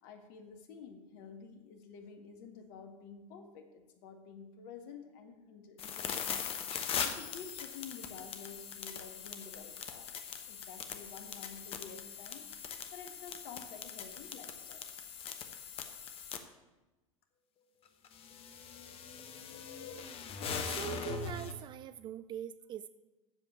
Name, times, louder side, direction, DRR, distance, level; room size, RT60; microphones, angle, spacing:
voice 1, 0.0-10.1 10.5-14.9, left 6 dB, 50° left, 6 dB, 1.6 m, -51 dB
sound 1, 5.8-16.4 17.9-21.5, left 7 dB, 35° left, 1.1 m, -41 dB
voice 2, 20.7-22.9, right 11 dB, 25° right, 13 dB, 0.3 m, -42 dB
7.9 x 7.4 x 7.6 m, 1.1 s
figure-of-eight pair, 80°, 18 cm